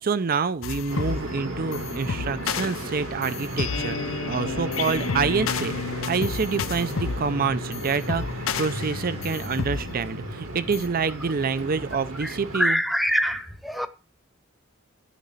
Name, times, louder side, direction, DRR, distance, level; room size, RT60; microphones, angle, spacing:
voice 1, 0.0-5.8 6.0-12.8, right 5 dB, 45° right, 0.5 m, -27 dB
sound 1, 0.6-10.9, left 5 dB, 75° left, 0.6 m, -32 dB
sound 2, 0.9-12.6, right 1 dB, 85° right, 3.1 m, -35 dB
voice 2, 12.5-13.9, equal, ahead, 0.8 m, -24 dB
12.5 x 4.2 x 8.2 m
head